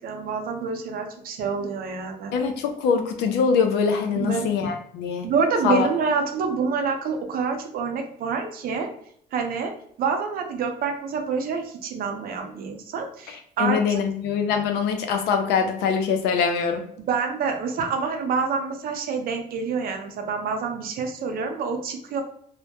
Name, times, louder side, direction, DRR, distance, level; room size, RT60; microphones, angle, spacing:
voice 1, 0.0-2.3 4.1-4.7 5.2-8.9 9.3-9.7 10.0-14.0 17.0-22.2, right 5 dB, 60° right, 4 dB, 0.6 m, -27 dB
voice 2, 2.3-5.3 5.6-5.9 13.6-16.8, left 6 dB, 85° left, 5 dB, 0.5 m, -23 dB
2.2 x 2.1 x 2.8 m, 0.66 s
cardioid pair, 110°, 17 cm